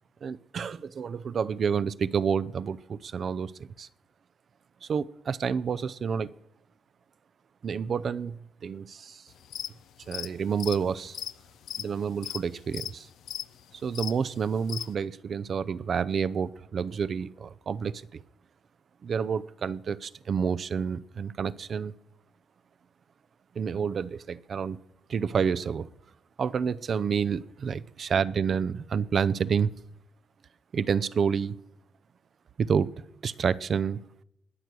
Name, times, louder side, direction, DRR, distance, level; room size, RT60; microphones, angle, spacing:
voice 1, 0.2-3.9 4.8-6.3 7.6-9.2 10.1-11.2 11.8-13.1 13.7-18.2 19.0-21.9 23.6-24.8 25.1-25.9 26.4-29.7 30.7-31.5 32.6-32.9 33.2-34.0, right 6 dB, 50° right, 0.6 m, -29 dB
sound 1, 9.3-9.7 10.0-14.9, left 11 dB, 75° left, 0.5 m, -37 dB
19.5 x 6.7 x 6.2 m
cardioid pair, 90°, 0 cm